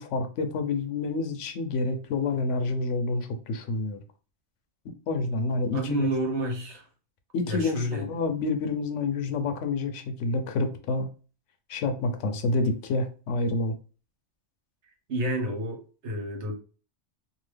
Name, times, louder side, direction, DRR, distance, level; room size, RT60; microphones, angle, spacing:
voice 1, 0.0-4.0 4.8-6.1 7.3-11.1 11.7-13.7, left 3 dB, 85° left, 1.0 m, -28 dB
voice 2, 5.7-6.8 7.5-8.1 15.1-16.5, right 1 dB, 70° right, 1.3 m, -29 dB
2.8 x 2.4 x 3.2 m
omnidirectional pair, 1.3 m